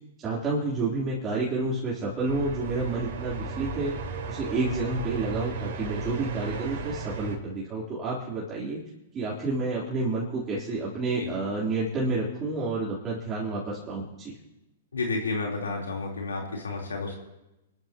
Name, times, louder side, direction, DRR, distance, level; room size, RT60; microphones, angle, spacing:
voice 1, 0.2-3.9 4.3-8.8 9.1-14.3, right 3 dB, 25° right, -7 dB, 3.5 m, -29 dB
sound 1, 2.2-7.4, right 4 dB, 55° right, 4.1 m, -35 dB
voice 2, 14.9-17.1, left 3 dB, 90° left, -1 dB, 3.8 m, -31 dB
28.5 x 13.0 x 3.0 m, 0.94 s
hypercardioid pair, 120°, 0 cm